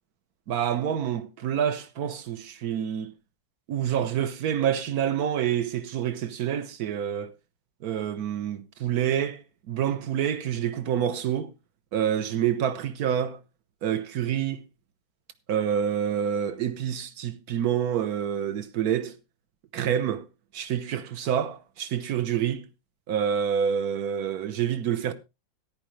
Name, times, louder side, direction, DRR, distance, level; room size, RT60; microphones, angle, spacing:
voice 1, 0.5-3.1 3.7-7.3 7.8-11.5 11.9-13.4 13.8-14.6 15.5-19.2 19.7-20.3 20.5-22.7 23.1-25.1, right 9 dB, 60° right, 1.4 m, -27 dB
14.0 x 10.5 x 3.2 m
omnidirectional pair, 2.0 m